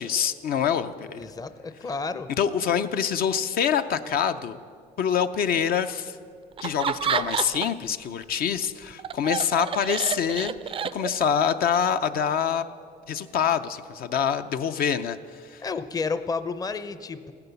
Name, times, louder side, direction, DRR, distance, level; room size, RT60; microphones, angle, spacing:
voice 1, 0.0-1.2 2.4-4.6 5.0-6.2 6.6-12.6 13.1-15.6, left 8 dB, 60° left, 9 dB, 0.6 m, -25 dB
voice 2, 1.1-2.3 15.6-17.3, left 4 dB, 20° left, 12 dB, 0.6 m, -31 dB
Laughter, 6.6-7.9 8.2-11.4, right 8 dB, 35° right, 0.4 m, -29 dB
16.0 x 10.5 x 7.0 m, 2.2 s
cardioid pair, 110°, 17 cm